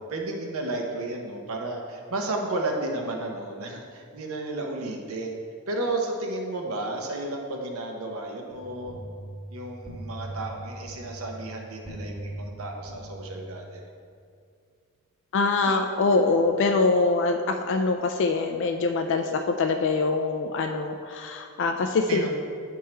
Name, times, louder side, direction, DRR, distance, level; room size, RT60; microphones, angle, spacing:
voice 1, 0.0-5.4 5.7-8.9 9.5-13.8 22.1-22.3, right 2 dB, 75° right, 1 dB, 0.9 m, -32 dB
sound 1, 8.5-13.7, right 1 dB, 20° right, 1.3 m, -40 dB
voice 2, 15.3-22.3, left 3 dB, 60° left, 4 dB, 0.4 m, -24 dB
9.5 x 3.6 x 4.4 m, 2.3 s
head